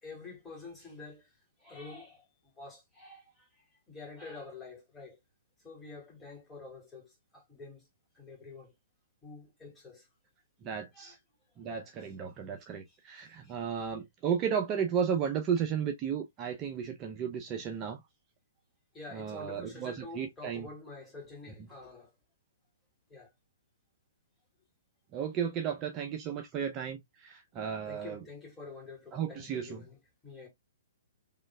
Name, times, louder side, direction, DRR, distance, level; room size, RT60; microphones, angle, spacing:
voice 1, 0.0-5.2 5.6-7.9 8.1-8.7 9.2-10.1 10.9-11.2 12.0-12.1 12.6-13.9 18.9-22.1 23.1-23.3 27.9-30.5, left 3 dB, 10° left, 2.1 m, -48 dB
voice 2, 10.6-11.2 11.6-18.0 19.1-20.6 25.1-28.2 29.1-29.9, right 7 dB, 30° right, 0.6 m, -34 dB
3.8 x 3.1 x 2.3 m
hypercardioid pair, 130°, 0 cm